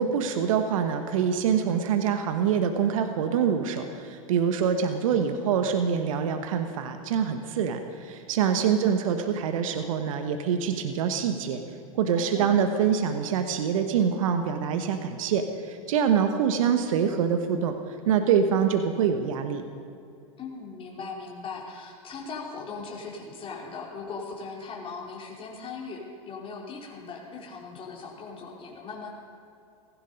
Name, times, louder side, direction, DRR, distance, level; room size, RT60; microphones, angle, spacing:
voice 1, 0.0-11.6 12.0-17.7 18.1-19.6, right 7 dB, 75° right, 7 dB, 1.2 m, -25 dB
voice 2, 8.6-8.9 12.1-12.5 20.4-29.1, left 4 dB, 30° left, -1 dB, 3.2 m, -39 dB
16.5 x 16.0 x 5.3 m, 2.6 s
hypercardioid pair, 95°, 18 cm